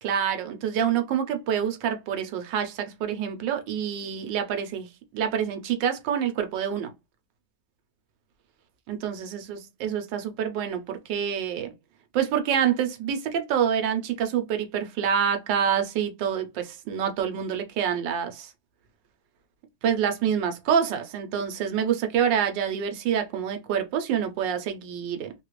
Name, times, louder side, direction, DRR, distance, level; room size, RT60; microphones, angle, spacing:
voice 1, 0.0-6.9 8.9-11.7 12.1-18.5 19.8-25.3, right 8 dB, 80° right, 1.4 m, -27 dB
3.2 x 2.4 x 3.0 m
omnidirectional pair, 2.0 m